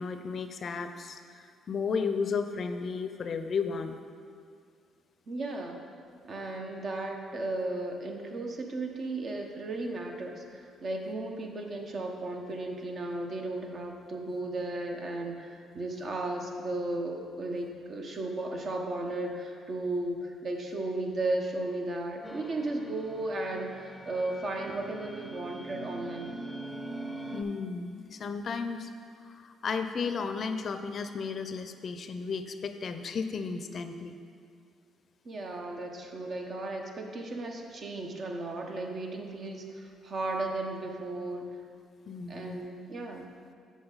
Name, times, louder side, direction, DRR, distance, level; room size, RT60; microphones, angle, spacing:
voice 1, 0.0-4.0 27.3-28.9 29.2-34.1 42.1-42.6, left 5 dB, 55° left, 8 dB, 0.5 m, -34 dB
voice 2, 5.3-5.8 6.2-26.4 35.2-41.5 42.3-43.3, right 2 dB, 50° right, 2 dB, 1.0 m, -35 dB
sound 1, 22.2-27.4, right 2 dB, 5° right, 0.8 m, -42 dB
7.8 x 6.1 x 4.0 m, 2.3 s
supercardioid pair, 60°, 0 cm